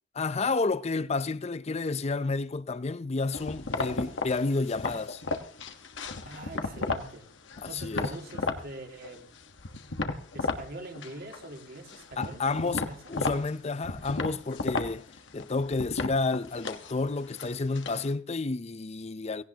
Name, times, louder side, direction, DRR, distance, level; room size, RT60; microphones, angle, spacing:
voice 1, 0.2-5.2 7.6-8.1 12.2-12.8 13.1-15.0 15.3-19.4, left 3 dB, 35° left, 0.6 m, -30 dB
sound 1, 3.3-7.1 7.5-8.6 9.0-10.7 10.9-11.6 11.9-18.1, left 3 dB, 85° left, 1.3 m, -34 dB
voice 2, 6.3-7.3 7.7-9.3 10.3-13.1, right 2 dB, 55° right, 2.3 m, -44 dB
17.5 x 17.0 x 2.9 m
head